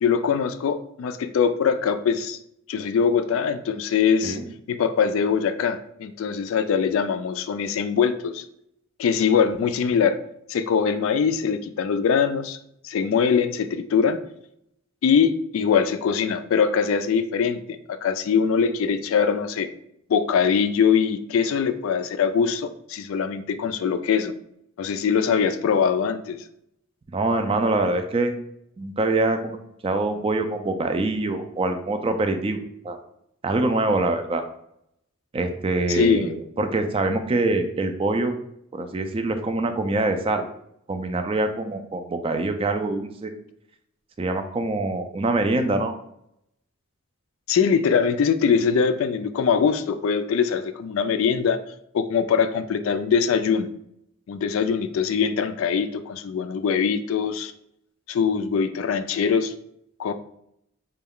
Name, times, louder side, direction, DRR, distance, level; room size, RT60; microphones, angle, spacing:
voice 1, 0.0-2.4 2.7-4.4 4.7-8.4 9.0-10.2 10.5-12.6 12.8-14.2 15.0-19.7 20.1-24.3 24.8-26.4 35.9-36.3 47.5-51.6 51.9-53.7 54.3-57.5 58.1-59.5 60.0-60.1, left 6 dB, 70° left, 10 dB, 0.3 m, -22 dB
voice 2, 27.1-28.3 28.8-29.6 29.8-32.6 32.8-33.0 33.4-34.4 35.3-38.3 38.7-40.4 40.9-43.3 44.2-46.0, right 2 dB, 25° right, 7 dB, 0.3 m, -24 dB
4.3 x 2.3 x 3.6 m, 0.75 s
head